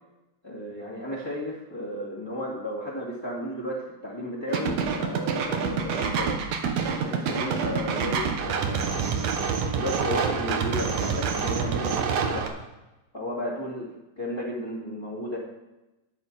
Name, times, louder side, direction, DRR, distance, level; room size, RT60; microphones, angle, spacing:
voice 1, 0.4-6.4 7.0-9.0 9.7-12.5 13.1-13.9 14.2-15.4, equal, 10° left, -6 dB, 2.1 m, -33 dB
sound 1, 4.5-12.5, right 6 dB, 65° right, 2.2 m, -27 dB
20.5 x 7.2 x 4.3 m, 1.0 s
omnidirectional pair, 3.5 m